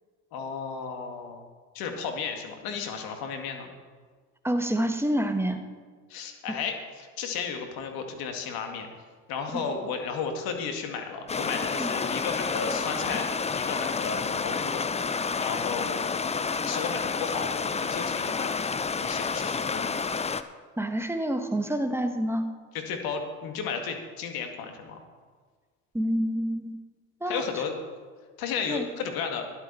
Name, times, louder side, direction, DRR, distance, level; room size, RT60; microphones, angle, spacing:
voice 1, 0.3-1.4 1.7-3.7 6.1-8.9 9.3-14.8 15.4-16.2 16.7-18.7 19.0-20.0 22.9-25.0 27.3-27.7 28.4-29.4, left 6 dB, 65° left, 4 dB, 2.0 m, -34 dB
voice 2, 4.4-5.6 9.5-9.6 11.8-11.9 20.8-22.5 25.9-26.8 27.2-27.4 28.7-28.9, right 1 dB, 5° right, 7 dB, 1.4 m, -27 dB
Stream, 11.3-20.4, left 5 dB, 15° left, 0.6 m, -29 dB
13.0 x 11.5 x 4.1 m, 1.5 s
hypercardioid pair, 65°, 38 cm